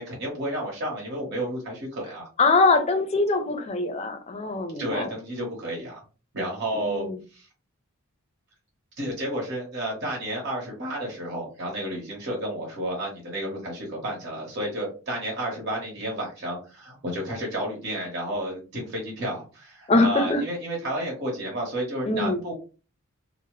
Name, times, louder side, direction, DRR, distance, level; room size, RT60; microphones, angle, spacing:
voice 1, 0.0-2.3 4.8-6.0 6.3-7.1 7.3-7.5 9.0-22.5, right 1 dB, 55° right, 1.1 m, -31 dB
voice 2, 2.4-5.1 6.7-7.2 19.9-20.4 22.0-22.4, left 3 dB, 30° left, 0.4 m, -23 dB
2.7 x 2.0 x 3.0 m
head